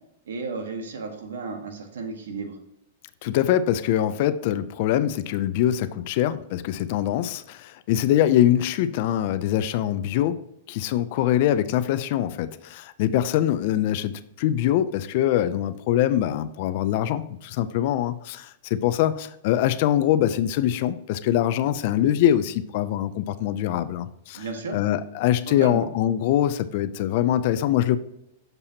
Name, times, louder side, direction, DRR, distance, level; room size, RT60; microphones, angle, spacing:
voice 1, 0.3-2.5 24.3-24.8 25.5-25.9, right 4 dB, 85° right, 5 dB, 1.4 m, -33 dB
voice 2, 3.2-10.4 10.7-24.5 24.7-28.0, left 11 dB, 55° left, 13 dB, 0.4 m, -23 dB
7.1 x 6.7 x 2.8 m, 0.81 s
hypercardioid pair, 135°, 0 cm